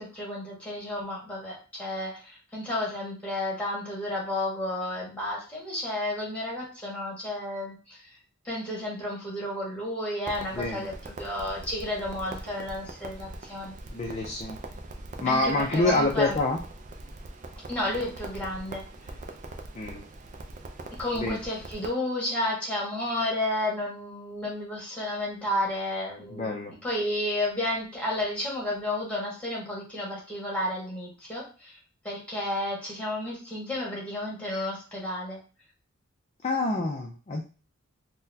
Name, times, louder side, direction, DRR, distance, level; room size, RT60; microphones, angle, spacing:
voice 1, 0.0-8.1 8.4-13.8 15.3-16.3 17.7-18.8 21.0-31.8 32.0-35.4, left 1 dB, 5° left, -4 dB, 1.4 m, -32 dB
Crackle, 10.3-21.9, right 2 dB, 40° right, 0.4 m, -42 dB
voice 2, 10.6-10.9 13.9-14.6 15.2-16.6 19.8-20.0 21.2-21.4 26.3-26.7 36.4-37.4, left 2 dB, 30° left, 0 dB, 0.4 m, -27 dB
3.8 x 2.2 x 2.7 m, 0.36 s
head